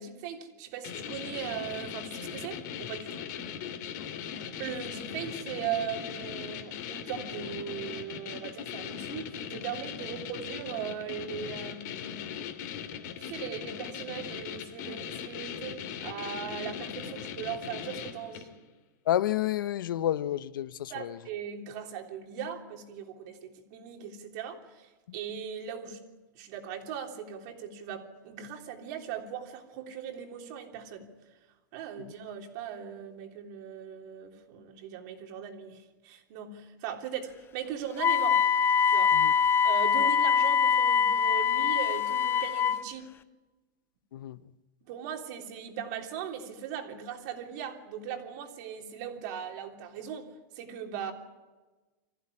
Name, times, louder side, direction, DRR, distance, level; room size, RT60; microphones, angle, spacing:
voice 1, 0.0-3.3 4.6-12.4 12.6-12.9 13.2-18.5 20.9-26.0 26.3-31.1 31.7-38.4 38.9-39.2 39.6-43.1 44.8-50.3 50.5-51.1, right 8 dB, 55° right, 3.4 m, -39 dB
sound 1, 0.8-18.6, left 8 dB, 60° left, 2.7 m, -39 dB
voice 2, 19.1-21.2 39.1-39.3 44.1-44.4, left 12 dB, 85° left, 0.8 m, -30 dB
Wind instrument woodwind instrument, 38.0-42.8, left 7 dB, 20° left, 0.7 m, -24 dB
24.5 x 15.0 x 9.9 m
supercardioid pair, 140°, 11 cm